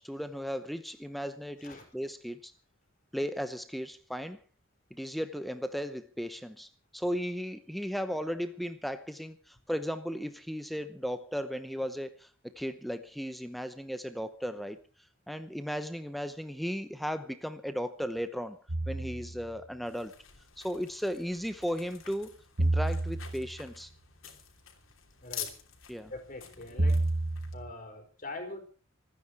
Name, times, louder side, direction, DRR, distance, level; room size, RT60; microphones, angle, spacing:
voice 1, 0.0-2.5 3.1-4.4 4.9-14.8 15.3-18.6 18.9-20.1 20.6-22.3 22.6-23.9 25.9-26.1, equal, ahead, 0.9 m, -36 dB
sound 1, 18.7-19.5 22.6-23.6 26.8-27.7, right 2 dB, 70° right, 1.6 m, -29 dB
sound 2, 19.9-27.6, left 9 dB, 85° left, 3.1 m, -48 dB
voice 2, 26.1-27.0 27.5-28.6, left 2 dB, 40° left, 4.6 m, -43 dB
26.5 x 9.8 x 4.7 m
head